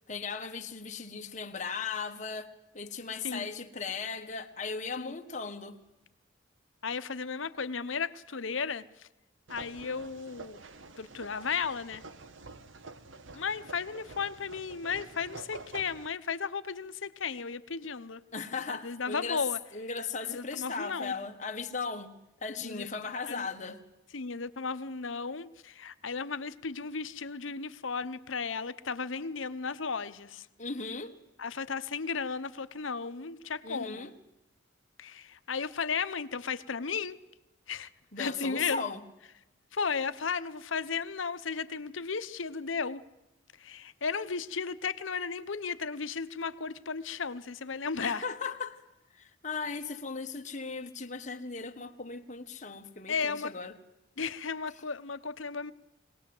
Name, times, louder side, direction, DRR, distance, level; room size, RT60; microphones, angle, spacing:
voice 1, 0.1-5.8 18.3-19.5 19.7-22.1 22.4-23.8 30.6-31.1 33.6-34.1 38.1-39.0 48.0-48.8 49.1-53.8, left 5 dB, 40° left, 1.5 m, -37 dB
voice 2, 6.8-9.1 9.5-10.6 11.0-12.0 13.3-18.2 18.7-19.6 20.3-21.1 22.6-22.9 23.2-23.5 24.1-30.5 31.4-34.1 35.0-37.2 37.7-37.9 38.2-38.9 39.7-43.0 43.6-48.2 53.1-53.5 54.2-55.7, left 5 dB, 80° left, 0.9 m, -35 dB
sound 1, 9.5-16.1, right 3 dB, 75° right, 1.2 m, -48 dB
22.0 x 18.5 x 7.8 m
head